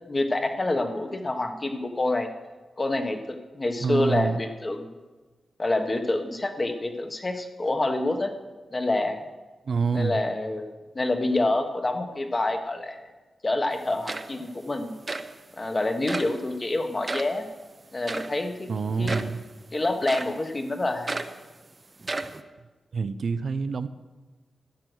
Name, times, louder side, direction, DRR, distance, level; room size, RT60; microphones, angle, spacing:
voice 1, 0.1-2.3 2.8-4.9 5.6-8.3 8.7-9.2 9.9-13.0 13.4-14.9 15.6-17.4 17.9-18.7 19.0-19.2 19.7-21.2, left 2 dB, 25° left, 6 dB, 1.2 m, -27 dB
voice 2, 3.8-4.4 9.7-10.2 18.7-19.4 22.9-23.9, right 5 dB, 60° right, 11 dB, 0.6 m, -26 dB
sound 1, 13.7-13.8 14.1-14.6 15.1-15.3 16.1-16.4 17.0-17.4 18.1-18.4 19.1-19.4 20.1-20.4 21.1-21.4 22.0-22.4, right 3 dB, 30° right, 0.7 m, -33 dB
13.0 x 9.6 x 6.3 m, 1.3 s
wide cardioid pair, 125°, 0 cm